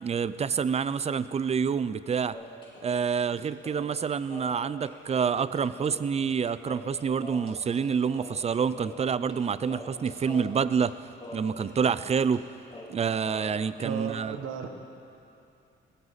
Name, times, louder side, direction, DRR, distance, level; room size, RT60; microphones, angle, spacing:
voice 1, 0.0-2.4 2.8-11.0 11.3-12.4 12.9-14.4, right 6 dB, 30° right, 15 dB, 0.5 m, -27 dB
sound 1, 2.3-6.4 6.6-7.8 8.1-9.4 9.7-12.1 12.3-12.4 12.7-13.9, left 2 dB, 25° left, 4.4 m, -44 dB
voice 2, 13.8-14.7, right 7 dB, 80° right, 5 dB, 1.4 m, -34 dB
18.0 x 16.0 x 4.1 m, 2.6 s
cardioid pair, 90°, 20 cm